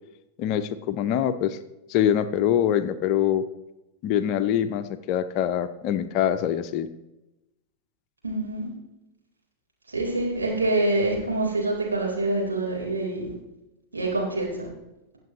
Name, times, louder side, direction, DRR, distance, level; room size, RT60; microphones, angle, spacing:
voice 1, 0.4-1.6 1.9-3.5 4.0-6.9, left 10 dB, 40° left, 11 dB, 0.6 m, -24 dB
voice 2, 8.2-8.7 9.9-13.3 13.9-14.7, right 2 dB, 75° right, -2 dB, 3.9 m, -26 dB
21.0 x 7.8 x 3.1 m, 0.97 s
figure-of-eight pair, 90°, 0 cm